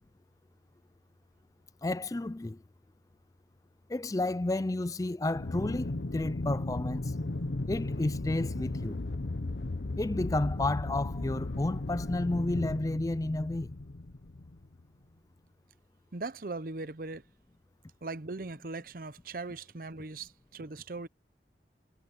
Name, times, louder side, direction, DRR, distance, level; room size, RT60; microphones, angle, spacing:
voice 1, 1.8-2.6 3.9-7.1 7.7-9.0 10.0-13.8, left 2 dB, 20° left, 0.4 m, -31 dB
Aircraft, 5.3-14.8, left 2 dB, 70° left, 0.9 m, -35 dB
voice 2, 16.1-17.2 18.0-21.1, right 3 dB, 50° right, 0.7 m, -39 dB
head